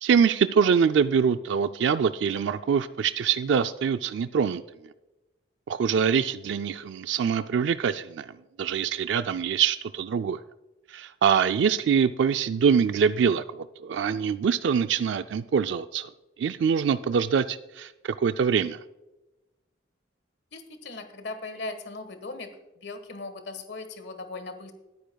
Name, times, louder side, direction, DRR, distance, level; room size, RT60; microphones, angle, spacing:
voice 1, 0.0-4.6 5.7-8.3 8.6-10.4 10.9-16.1 16.4-18.8, right 6 dB, 80° right, 11 dB, 0.3 m, -24 dB
voice 2, 20.5-22.5 22.8-24.7, left 3 dB, 65° left, 8 dB, 1.4 m, -38 dB
20.5 x 9.6 x 2.3 m, 1.0 s
head